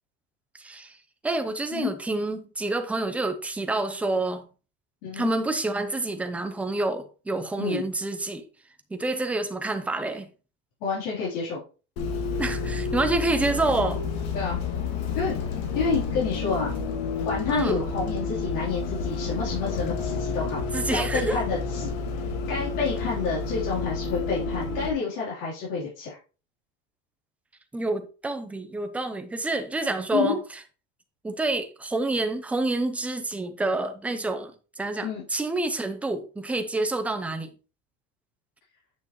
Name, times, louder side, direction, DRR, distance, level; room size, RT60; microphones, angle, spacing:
voice 1, 0.6-1.0 1.2-4.5 5.1-8.4 8.9-10.3 12.4-14.0 17.5-17.8 20.7-21.4 27.7-30.4 31.2-37.5, right 2 dB, 5° right, 0.5 m, -28 dB
voice 2, 10.8-11.6 14.3-14.6 15.2-15.3 15.7-16.8 17.2-20.6 20.9-21.9 22.5-26.2 30.1-30.4 35.0-35.2, left 5 dB, 60° left, 3.5 m, -29 dB
Bus, 12.0-24.9, left 4 dB, 75° left, 2.2 m, -30 dB
9.1 x 5.9 x 3.0 m
cardioid pair, 180°, 30 cm